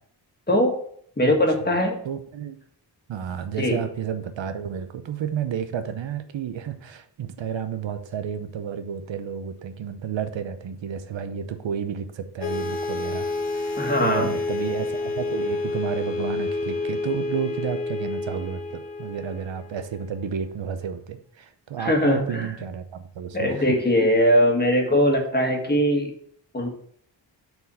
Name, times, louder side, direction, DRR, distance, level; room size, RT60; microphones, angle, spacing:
voice 1, 1.2-2.0 3.6-3.8 13.8-14.3 21.8-22.5 23.3-26.1 26.5-26.7, equal, 20° left, 1 dB, 1.6 m, -21 dB
voice 2, 2.0-2.6 3.1-13.3 13.5-23.7, right 7 dB, 90° right, 9 dB, 0.8 m, -31 dB
sound 1, 12.4-20.1, left 3 dB, 80° left, 1.7 m, -29 dB
7.0 x 4.1 x 5.4 m, 0.62 s
wide cardioid pair, 135°, 44 cm